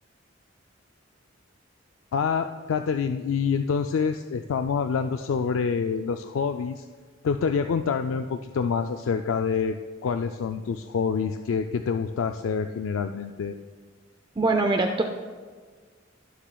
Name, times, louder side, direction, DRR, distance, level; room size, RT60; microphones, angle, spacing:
voice 1, 2.1-6.9 7.2-9.8 10.0-13.6, left 6 dB, 80° left, 7 dB, 0.3 m, -26 dB
voice 2, 14.4-15.0, right 2 dB, 25° right, 4 dB, 0.5 m, -22 dB
18.0 x 7.3 x 2.3 m, 1.5 s
head